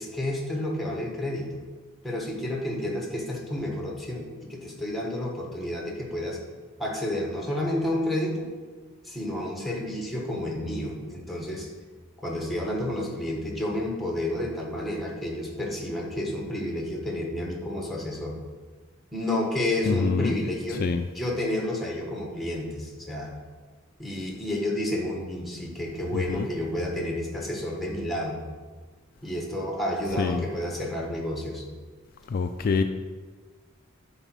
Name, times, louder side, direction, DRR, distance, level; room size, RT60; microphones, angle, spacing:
voice 1, 0.0-1.5 2.0-6.4 6.8-8.5 9.0-11.7 12.2-18.4 19.1-20.8 21.1-23.3 24.0-28.4 29.2-31.6, left 1 dB, ahead, -1 dB, 1.3 m, -30 dB
voice 2, 19.8-20.4 20.7-21.0 26.1-26.5 30.2-30.5 32.3-32.8, left 4 dB, 45° left, 7 dB, 0.3 m, -25 dB
9.2 x 4.0 x 6.1 m, 1.4 s
head